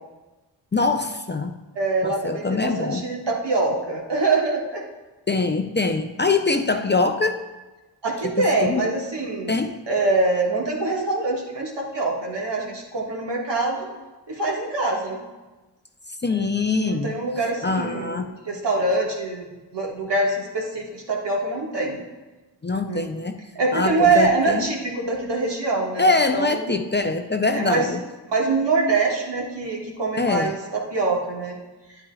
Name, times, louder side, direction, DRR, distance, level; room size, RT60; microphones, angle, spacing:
voice 1, 0.7-1.5 2.0-3.0 5.3-7.4 8.4-8.9 9.5-9.8 16.2-17.1 17.6-18.3 22.6-23.4 23.7-24.7 26.0-28.0 30.2-30.5, left 3 dB, 25° left, 7 dB, 0.5 m, -23 dB
voice 2, 1.7-4.8 8.0-9.6 9.9-13.9 14.3-15.2 16.3-16.5 16.8-22.0 22.9-23.1 23.6-26.7 27.4-27.9 28.3-31.6, right 3 dB, 65° right, -2 dB, 1.8 m, -24 dB
9.6 x 8.6 x 2.3 m, 1.2 s
cardioid pair, 45°, 45 cm